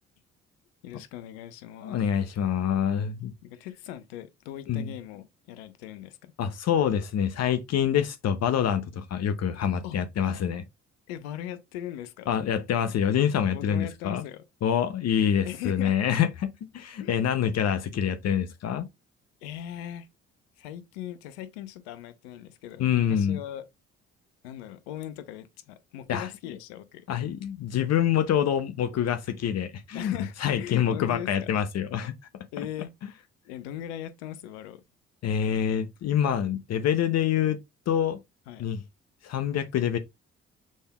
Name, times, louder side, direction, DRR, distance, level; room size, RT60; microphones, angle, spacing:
voice 1, 0.8-2.0 3.4-6.3 9.8-10.0 11.1-12.3 13.5-14.4 15.4-16.0 17.0-17.2 19.4-20.1 20.6-23.6 24.4-27.0 29.9-31.5 32.5-32.9 33.4-34.8 38.5-38.7, left 11 dB, 85° left, 0.6 m, -39 dB
voice 2, 1.8-3.3 4.7-4.9 6.4-10.6 12.3-14.2 14.6-16.5 16.7-18.9 22.8-23.4 26.1-26.3 27.1-32.1 32.6-32.7 35.2-37.6 37.9-38.2 38.6-38.8 39.2-40.0, left 9 dB, 55° left, 0.7 m, -26 dB
6.3 x 3.5 x 2.3 m
hypercardioid pair, 50°, 31 cm